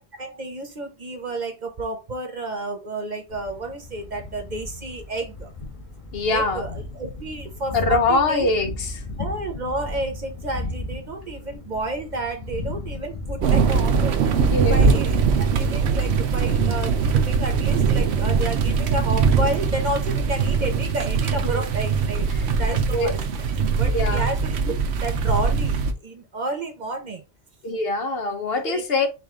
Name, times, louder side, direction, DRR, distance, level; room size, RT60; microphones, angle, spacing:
voice 1, 0.2-5.5 6.3-8.5 9.2-14.2 14.7-16.9 17.3-22.3 22.6-23.2 23.8-27.2 28.6-28.8, right 2 dB, 45° right, 0.9 m, -31 dB
Thunder, 3.3-16.6, left 2 dB, 30° left, 1.3 m, -36 dB
voice 2, 6.1-6.6 7.7-9.0 14.3-15.0 21.4-21.5 22.3-22.5 22.9-23.1 23.9-24.3 27.6-29.1, left 3 dB, 65° left, 1.0 m, -23 dB
sound 1, 13.4-25.9, right 5 dB, 75° right, 0.9 m, -21 dB
4.9 x 2.5 x 3.6 m
omnidirectional pair, 1.1 m